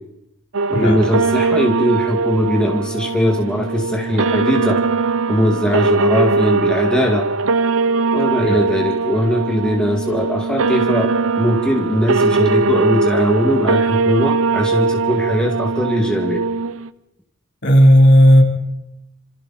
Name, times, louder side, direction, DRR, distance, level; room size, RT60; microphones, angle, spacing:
sound 1, 0.5-16.9, right 4 dB, 75° right, 0.7 m, -20 dB
voice 1, 0.7-4.8 5.3-7.3 8.1-11.1 11.4-16.4, equal, 5° left, 0 dB, 2.2 m, -19 dB
voice 2, 17.6-18.4, equal, 55° left, 1 dB, 3.6 m, -11 dB
27.5 x 27.0 x 4.3 m, 0.89 s
head